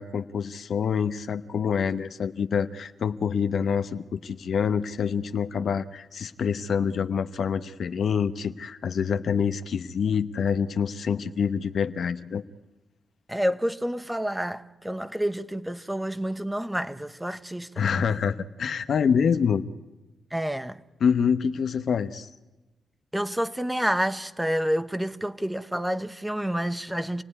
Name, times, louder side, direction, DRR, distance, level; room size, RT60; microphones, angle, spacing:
voice 1, 0.0-12.4 17.8-19.6 21.0-22.3, left 6 dB, 65° left, 0.9 m, -26 dB
voice 2, 13.3-17.7 20.3-20.8 23.1-27.2, equal, 10° right, 1.1 m, -28 dB
27.5 x 17.5 x 9.8 m
cardioid pair, 70°, 0 cm